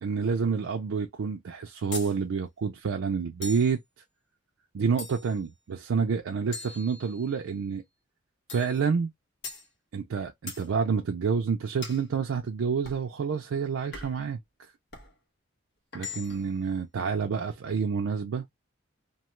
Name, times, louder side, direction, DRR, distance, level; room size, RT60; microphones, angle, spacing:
voice 1, 0.0-3.8 4.7-7.8 8.5-9.1 9.9-14.4 15.9-18.5, right 5 dB, 75° right, 0.4 m, -28 dB
sound 1, 1.9-2.2 3.4-3.8 5.0-5.4 6.5-7.4 8.5-8.8 9.4-9.7 10.5-10.7 11.8-12.1 12.8-13.1 13.9-14.3 14.9-15.1 15.9-16.5, left 3 dB, 60° left, 1.1 m, -41 dB
2.7 x 2.3 x 3.0 m
head